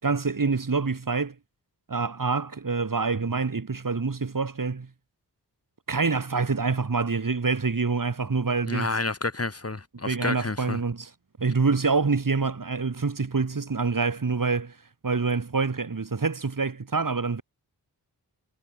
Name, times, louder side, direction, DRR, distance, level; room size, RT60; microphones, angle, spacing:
voice 1, 0.0-1.4 1.9-4.9 5.9-8.9 10.1-11.1 11.4-14.7 15.0-17.4, right 4 dB, 50° right, 7.2 m, -26 dB
voice 2, 8.7-10.8, left 3 dB, 35° left, 6.6 m, -30 dB
wide cardioid pair, 70°, 40 cm